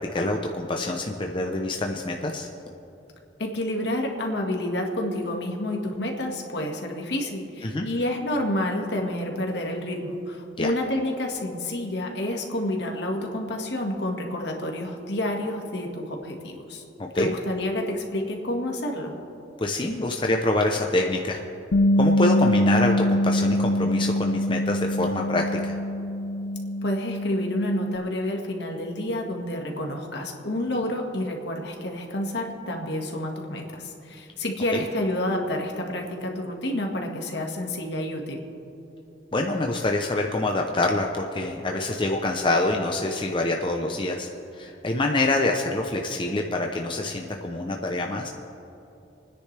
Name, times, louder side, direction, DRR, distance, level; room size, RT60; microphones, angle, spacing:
voice 1, 0.1-2.5 7.6-7.9 10.6-10.7 17.0-17.3 19.6-21.4 22.0-25.8 34.7-34.8 39.3-48.3, left 2 dB, 25° left, 2 dB, 0.7 m, -26 dB
voice 2, 3.4-16.8 17.2-19.2 26.8-38.4, left 1 dB, 65° left, 1 dB, 1.8 m, -29 dB
Bass guitar, 21.7-28.0, left 1 dB, 90° left, 0.6 m, -24 dB
30.0 x 10.0 x 3.4 m, 2.9 s
head